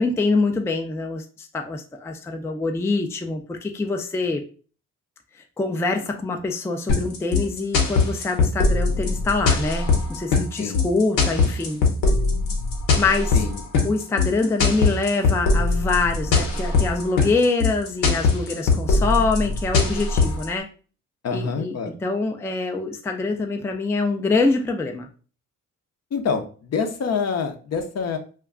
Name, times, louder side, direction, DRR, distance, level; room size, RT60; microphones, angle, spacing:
voice 1, 0.0-4.4 5.3-11.8 13.0-13.4 13.8-20.7 21.3-21.8 22.0-25.1, left 3 dB, 10° left, 4 dB, 0.4 m, -25 dB
sound 1, 6.9-20.5, left 4 dB, 80° left, 0.8 m, -21 dB
voice 2, 21.2-21.9 26.1-28.2, left 5 dB, 50° left, 6 dB, 0.6 m, -26 dB
2.2 x 2.2 x 3.6 m, 0.39 s
supercardioid pair, 60°, 33 cm